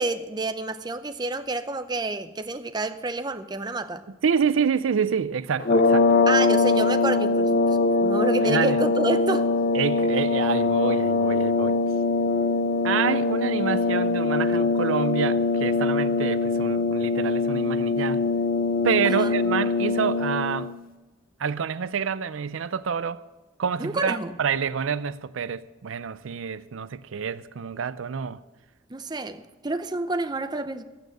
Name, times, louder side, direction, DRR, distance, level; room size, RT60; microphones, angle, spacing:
voice 1, 0.0-4.0 6.3-9.5 19.0-19.3 23.8-24.3 28.9-30.8, right 2 dB, 20° right, 0.6 m, -29 dB
voice 2, 4.2-6.2 8.4-8.8 9.7-11.8 12.8-18.2 18.8-20.7 21.4-23.2 23.6-28.4, right 6 dB, 85° right, 0.5 m, -27 dB
sound 1, 5.6-20.7, left 3 dB, 45° left, 0.5 m, -22 dB
13.5 x 9.1 x 6.5 m
head